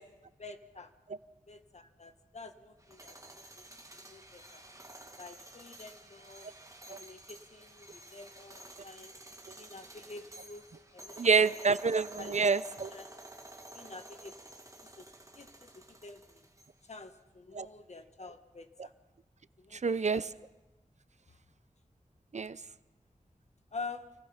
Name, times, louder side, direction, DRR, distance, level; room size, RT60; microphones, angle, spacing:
voice 1, 0.4-0.9 1.5-4.6 5.2-6.5 6.9-9.1 9.6-11.7 12.2-12.3 12.9-13.1 13.7-14.5 14.8-16.5 16.8-18.9 19.6-20.3 21.3-21.4 23.7-24.1, left 3 dB, 55° left, 7 dB, 1.7 m, -48 dB
sound 1, 2.8-16.9, right 1 dB, 25° right, 2.0 m, -51 dB
voice 2, 11.2-12.9 17.5-17.7 19.7-20.2 22.3-22.6, right 5 dB, 60° right, 15 dB, 0.7 m, -27 dB
28.5 x 19.0 x 5.8 m, 1.1 s
wide cardioid pair, 70°, 13 cm